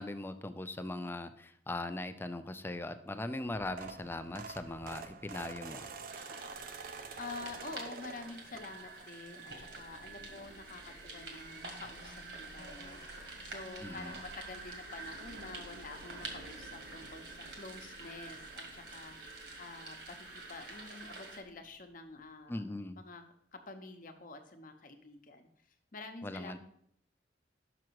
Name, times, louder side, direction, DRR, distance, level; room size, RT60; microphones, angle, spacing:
voice 1, 0.0-5.9 13.8-14.1 22.5-23.0 26.2-26.6, left 2 dB, 10° left, 10 dB, 0.4 m, -40 dB
sound 1, 3.4-9.1 9.5-9.8 11.0-11.1 11.3-11.5 11.8-11.9, right 4 dB, 55° right, 0.5 m, -47 dB
sound 2, 6.1-21.4, right 3 dB, 70° right, 1.7 m, -48 dB
voice 2, 7.2-13.2 13.4-22.6 22.9-25.5 25.9-26.6, left 3 dB, 50° left, 6 dB, 0.9 m, -48 dB
sound 3, 9.5-22.2, equal, 85° right, 1.0 m, -57 dB
6.1 x 6.0 x 4.6 m, 0.69 s
head